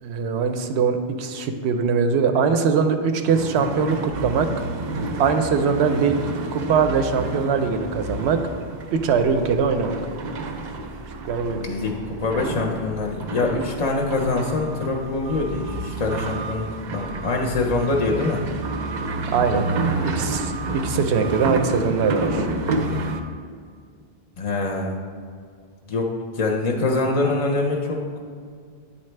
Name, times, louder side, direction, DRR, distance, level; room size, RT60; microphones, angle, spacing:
voice 1, 0.0-4.5 5.2-6.1 6.5-8.4 8.9-10.0 11.2-11.6 19.3-19.7 20.0-22.5, right 5 dB, 85° right, 7 dB, 0.8 m, -22 dB
sound 1, 3.3-23.2, right 2 dB, 55° right, 0.6 m, -30 dB
voice 2, 11.5-16.7 16.9-18.4 24.4-25.0 25.9-26.1 26.3-28.0, left 3 dB, 45° left, 1 dB, 0.5 m, -24 dB
8.8 x 4.1 x 3.2 m, 2.1 s
omnidirectional pair, 1.1 m